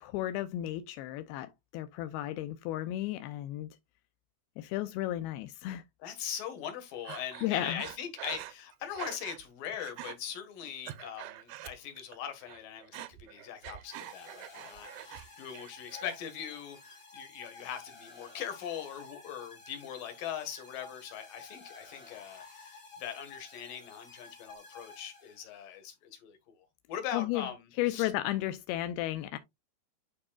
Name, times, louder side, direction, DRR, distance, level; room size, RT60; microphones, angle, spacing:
voice 1, 0.0-3.7 4.6-5.8 7.4-7.8 27.1-27.5 27.8-29.4, left 14 dB, 85° left, 2.3 m, -34 dB
voice 2, 6.0-28.1, left 9 dB, 60° left, 2.9 m, -41 dB
Breathing, 7.1-9.4 9.7-10.2 10.6-12.2 12.4-15.3 15.5-16.2, right 15 dB, 80° right, 2.1 m, -45 dB
sound 1, 13.8-25.7, left 3 dB, 35° left, 1.7 m, -52 dB
11.5 x 4.7 x 2.3 m
omnidirectional pair, 4.9 m